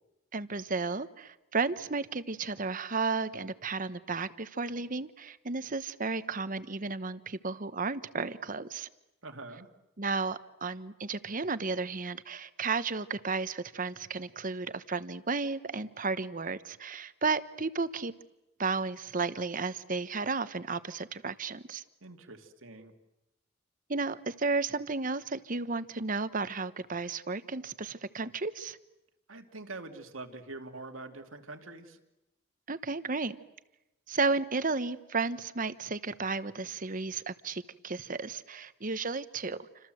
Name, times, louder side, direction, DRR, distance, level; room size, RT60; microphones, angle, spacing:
voice 1, 0.3-8.9 10.0-18.1 18.6-21.8 23.9-28.8 32.7-33.4 34.1-39.6, right 4 dB, 45° right, 13 dB, 1.1 m, -33 dB
voice 2, 9.2-9.7 22.0-22.9 29.3-32.0, right 2 dB, 85° right, 5 dB, 2.6 m, -44 dB
29.0 x 26.0 x 7.9 m, 0.94 s
head